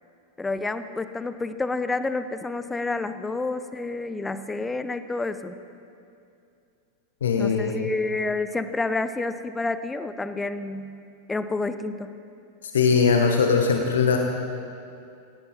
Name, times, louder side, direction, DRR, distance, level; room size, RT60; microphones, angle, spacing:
voice 1, 0.4-5.6 7.4-11.0 11.3-12.1, left 3 dB, 10° left, 12 dB, 0.7 m, -29 dB
voice 2, 7.2-7.9 12.7-14.2, left 5 dB, 65° left, 3 dB, 1.2 m, -20 dB
17.0 x 16.5 x 4.3 m, 2.5 s
figure-of-eight pair, 90°, 0 cm